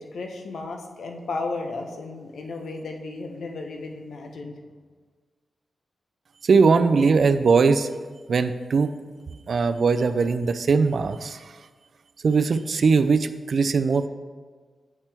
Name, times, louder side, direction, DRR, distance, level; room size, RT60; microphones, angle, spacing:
voice 1, 0.0-4.6, left 3 dB, 85° left, 3 dB, 0.8 m, -34 dB
voice 2, 6.4-7.9 8.3-8.9 9.5-11.4 12.2-14.1, right 4 dB, 60° right, 11 dB, 0.3 m, -20 dB
7.9 x 5.9 x 3.4 m, 1.5 s
wide cardioid pair, 105°, 0 cm